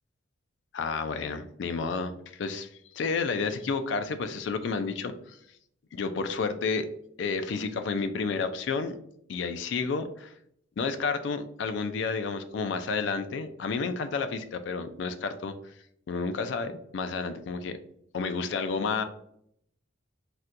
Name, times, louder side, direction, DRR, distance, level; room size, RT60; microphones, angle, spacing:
voice 1, 0.7-2.7 2.9-5.4 5.9-6.9 7.2-9.0 9.3-10.3 10.8-15.5 16.1-17.8 18.1-19.0, left 4 dB, 60° left, 9 dB, 0.3 m, -31 dB
4.1 x 2.2 x 2.4 m, 0.70 s
head